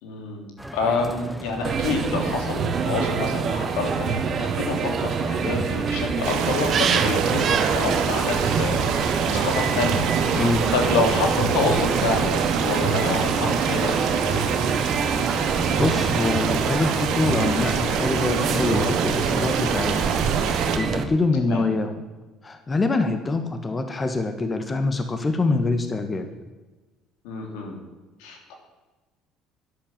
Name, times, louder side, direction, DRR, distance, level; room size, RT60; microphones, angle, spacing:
voice 1, 0.0-14.5 21.3-21.7 27.2-27.8 28.2-28.5, left 3 dB, 85° left, 3 dB, 3.2 m, -28 dB
sound 1, 0.6-16.8, equal, ahead, 1.0 m, -37 dB
sound 2, 1.6-21.0, right 6 dB, 50° right, 1.5 m, -26 dB
sound 3, 6.2-20.8, right 7 dB, 70° right, 2.1 m, -26 dB
voice 2, 10.3-10.7 15.4-21.9 22.4-26.3, left 3 dB, 25° left, 7 dB, 1.6 m, -25 dB
11.5 x 10.5 x 7.4 m, 1.2 s
supercardioid pair, 85°, 0 cm